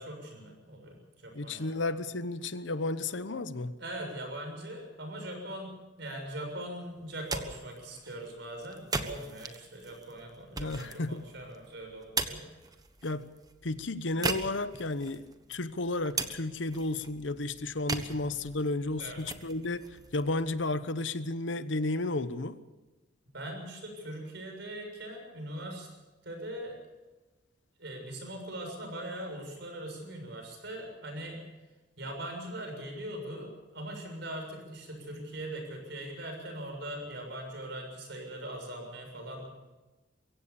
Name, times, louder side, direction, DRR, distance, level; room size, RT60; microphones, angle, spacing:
voice 1, 0.0-1.7 3.8-12.4 18.1-18.3 19.0-19.2 23.3-25.9 26.2-26.8 27.8-31.4 32.0-39.5, right 1 dB, 70° right, 7.0 m, -41 dB
voice 2, 1.3-3.8 10.6-11.3 13.0-13.3 13.6-22.6, left 2 dB, 85° left, 1.0 m, -33 dB
sound 1, 7.0-21.0, right 3 dB, 20° right, 1.2 m, -40 dB
23.0 x 16.0 x 7.1 m
head